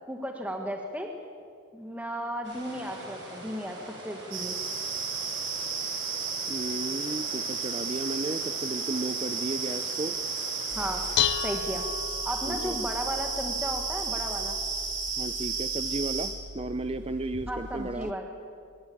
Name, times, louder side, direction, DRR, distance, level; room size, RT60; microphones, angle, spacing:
voice 1, 0.1-1.1 1.7-3.8 4.0-4.6 10.7-11.0 11.4-11.9 12.2-14.6 17.5-18.2, equal, 5° right, 2 dB, 1.7 m, -34 dB
sound 1, 2.4-11.2, right 1 dB, 55° right, 7.8 m, -44 dB
sound 2, 4.3-16.3, right 5 dB, 70° right, 5.9 m, -33 dB
voice 2, 6.5-10.2 12.5-12.8 15.2-18.1, right 2 dB, 25° right, 10 dB, 0.6 m, -34 dB
Dishes pots and pans, 10.7-18.1, left 8 dB, 55° left, 0.8 m, -36 dB
25.5 x 21.5 x 8.7 m, 2.2 s
head